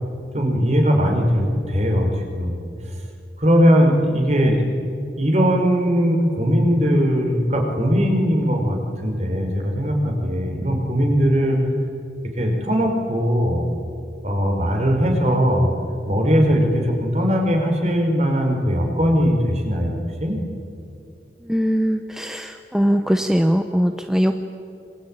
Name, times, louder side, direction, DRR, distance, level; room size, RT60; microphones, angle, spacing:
voice 1, 0.3-2.6 3.4-4.7 5.2-11.6 12.4-13.7 14.2-15.7 16.1-20.4, equal, 40° right, 2 dB, 4.8 m, -19 dB
voice 2, 21.4-24.5, equal, 5° right, 6 dB, 0.8 m, -21 dB
26.0 x 24.5 x 8.8 m, 2.6 s
head